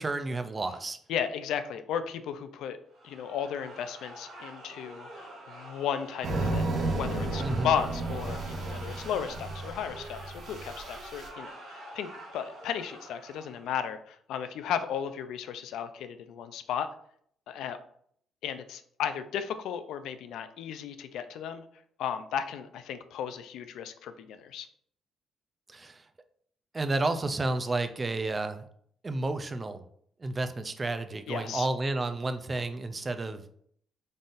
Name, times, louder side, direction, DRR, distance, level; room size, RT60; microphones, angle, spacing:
voice 1, 0.0-1.0 7.4-7.7 25.7-26.0 26.7-28.6 29.0-29.8 30.2-33.4, right 2 dB, 30° right, 9 dB, 0.4 m, -31 dB
voice 2, 1.1-2.8 3.0-16.9 17.5-17.8 18.4-21.6 22.0-24.7 31.3-31.7, left 8 dB, 85° left, 10 dB, 0.3 m, -35 dB
sound 1, 2.9-13.8, right 1 dB, 80° right, 1.5 m, -46 dB
sound 2, 6.2-11.3, right 2 dB, 60° right, 0.9 m, -33 dB
3.9 x 3.7 x 2.5 m, 0.64 s
cardioid pair, 90°, 0 cm